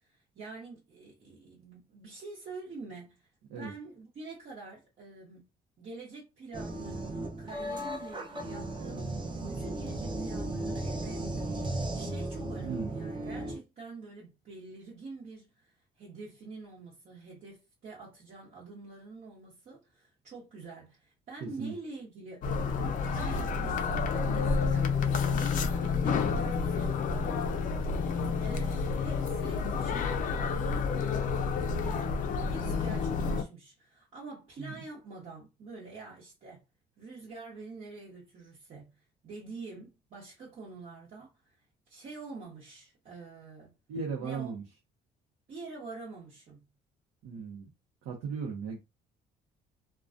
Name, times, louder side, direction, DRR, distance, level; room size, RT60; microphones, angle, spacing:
voice 1, 0.0-3.3 3.5-5.4 5.8-26.9 27.9-31.0 31.7-32.2 32.5-36.6 37.0-38.9 39.2-41.6 41.9-43.7 44.2-44.5 45.5-46.6, right 3 dB, 50° right, 1.0 m, -46 dB
sound 1, 6.5-13.6, right 1 dB, 30° right, 0.7 m, -36 dB
voice 2, 21.4-21.7 34.6-34.8 43.9-44.6 47.2-47.7 48.0-48.8, right 5 dB, 90° right, 0.7 m, -37 dB
sound 2, 22.4-33.4, left 5 dB, 50° left, 0.4 m, -29 dB
2.2 x 2.2 x 2.5 m
cardioid pair, 110°, 17 cm